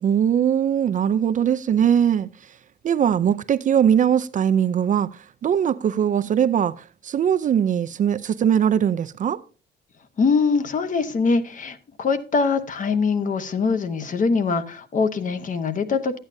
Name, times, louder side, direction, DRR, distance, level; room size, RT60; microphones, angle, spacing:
voice 1, 0.0-2.3 2.8-9.4, right 9 dB, 40° right, 0.4 m, -21 dB
voice 2, 10.2-16.2, left 4 dB, 40° left, 0.9 m, -23 dB
12.5 x 8.8 x 2.6 m
cardioid pair, 140°, 20 cm